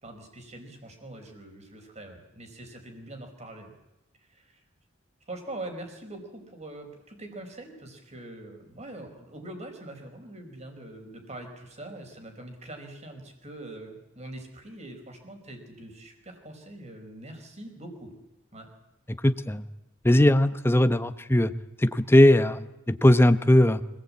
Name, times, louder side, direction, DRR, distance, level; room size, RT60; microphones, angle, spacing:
voice 1, 0.0-3.7 4.2-4.6 5.3-18.1 18.5-18.7, right 1 dB, 35° right, 4 dB, 4.8 m, -43 dB
voice 2, 19.2-19.6 20.0-21.5 21.8-23.8, left 1 dB, 10° left, 11 dB, 0.9 m, -19 dB
25.5 x 18.5 x 8.7 m, 0.96 s
head